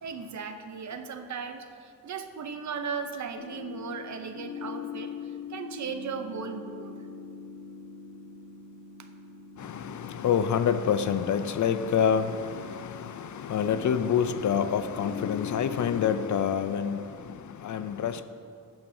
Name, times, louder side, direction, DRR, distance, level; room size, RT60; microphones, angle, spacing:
voice 1, 0.0-7.0, right 5 dB, 55° right, 0.7 m, -37 dB
sound 1, 3.3-16.6, left 7 dB, 90° left, 1.4 m, -42 dB
voice 2, 9.6-18.2, left 7 dB, 60° left, 0.5 m, -27 dB
12.5 x 8.8 x 2.7 m
wide cardioid pair, 150°, 34 cm